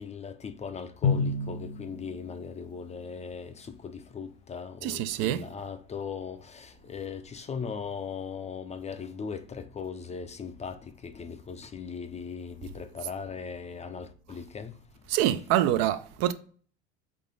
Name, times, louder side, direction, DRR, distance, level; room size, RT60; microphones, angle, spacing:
voice 1, 0.0-14.7, left 6 dB, 20° left, 0.5 m, -39 dB
Drum, 1.0-3.2, left 4 dB, 60° left, 0.9 m, -31 dB
voice 2, 4.8-5.5 15.1-16.3, right 12 dB, 55° right, 0.5 m, -26 dB
3.8 x 3.7 x 3.6 m
hypercardioid pair, 80°, 31 cm